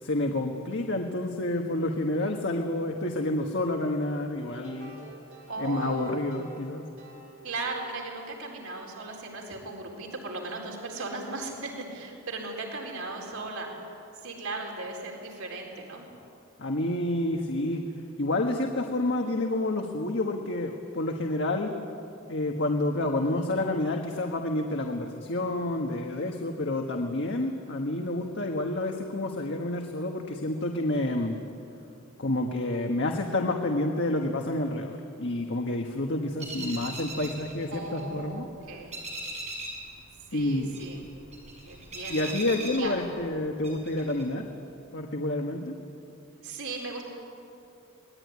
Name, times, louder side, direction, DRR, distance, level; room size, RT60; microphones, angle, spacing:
voice 1, 0.0-5.0 5.6-6.9 16.6-17.8 18.2-21.8 22.3-31.4 32.2-38.5 40.3-40.7 42.1-44.5 44.9-45.7, left 1 dB, 60° left, 2 dB, 1.6 m, -29 dB
sound 1, 4.5-8.4, right 2 dB, 70° right, 5.9 m, -50 dB
voice 2, 5.5-6.3 7.4-13.7 14.2-16.0 37.7-39.0 40.3-41.0 41.7-42.3 42.8-43.1 46.4-47.0, right 3 dB, 90° right, 0 dB, 4.4 m, -37 dB
sound 2, 36.4-38.4 38.7-39.9 40.2-43.3 43.6-44.2, right 2 dB, 35° right, 6.6 m, -39 dB
25.5 x 20.0 x 9.7 m, 2.7 s
head